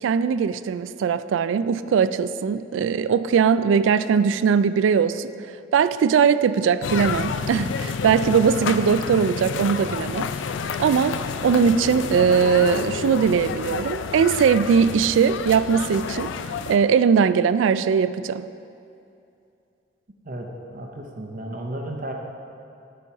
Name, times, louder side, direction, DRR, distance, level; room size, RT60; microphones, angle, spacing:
voice 1, 0.0-5.3 5.7-10.3 10.8-16.3 16.7-18.5, right 6 dB, 85° right, 15 dB, 0.3 m, -20 dB
sound 1, 6.8-16.8, left 6 dB, 80° left, 0.4 m, -29 dB
voice 2, 20.2-22.1, right 1 dB, 45° right, 2 dB, 0.8 m, -33 dB
10.0 x 5.4 x 4.6 m, 2.6 s
head